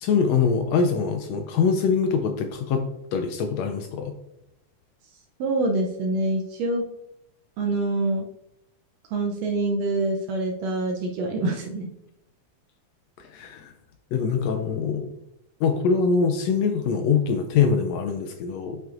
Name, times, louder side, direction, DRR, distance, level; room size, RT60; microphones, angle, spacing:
voice 1, 0.0-2.8 3.1-4.1 13.2-13.7 14.1-15.1 15.6-18.8, left 5 dB, 80° left, 6 dB, 1.6 m, -23 dB
voice 2, 5.4-6.8 7.6-8.2 9.1-11.9, right 2 dB, 75° right, 2 dB, 1.6 m, -25 dB
9.0 x 5.6 x 2.5 m, 0.84 s
omnidirectional pair, 3.4 m